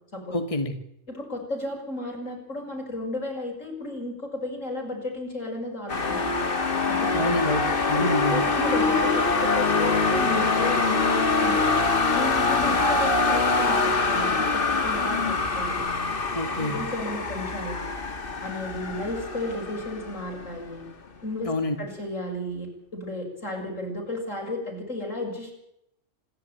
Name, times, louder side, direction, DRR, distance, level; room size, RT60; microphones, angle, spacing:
voice 1, 0.3-0.7 7.1-8.4 16.3-16.8 21.4-21.8, left 1 dB, 25° left, 5 dB, 2.3 m, -27 dB
voice 2, 1.1-6.4 6.9-7.2 7.9-11.7 12.1-15.8 16.6-17.9 18.4-20.9 21.2-21.5 21.8-25.5, left 1 dB, 90° left, 1 dB, 7.0 m, -34 dB
sound 1, 5.9-20.7, left 3 dB, 45° left, 1.8 m, -25 dB
sound 2, 8.5-12.8, left 3 dB, 10° left, 2.0 m, -30 dB
26.5 x 12.0 x 9.2 m, 0.78 s
omnidirectional pair, 1.3 m